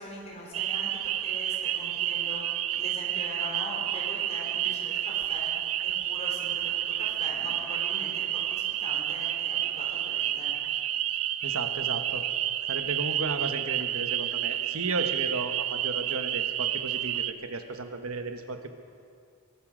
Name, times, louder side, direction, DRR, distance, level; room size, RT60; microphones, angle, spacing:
voice 1, 0.0-10.6, left 1 dB, 30° left, -2 dB, 3.9 m, -42 dB
sound 1, 0.5-17.3, right 12 dB, 70° right, 0.5 m, -30 dB
voice 2, 11.4-12.2 12.7-18.7, right 3 dB, 85° right, 7 dB, 1.1 m, -34 dB
21.0 x 12.5 x 5.1 m, 2.3 s
head